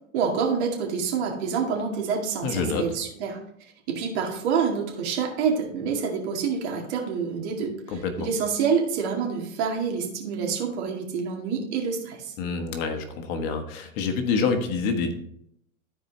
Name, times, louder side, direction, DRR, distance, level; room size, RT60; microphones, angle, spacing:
voice 1, 0.1-3.4 3.9-12.3, right 6 dB, 55° right, 1 dB, 2.1 m, -27 dB
voice 2, 2.4-2.8 7.9-8.3 12.4-15.1, left 5 dB, 45° left, 5 dB, 1.4 m, -27 dB
14.0 x 4.7 x 3.1 m, 0.72 s
hypercardioid pair, 110°, 41 cm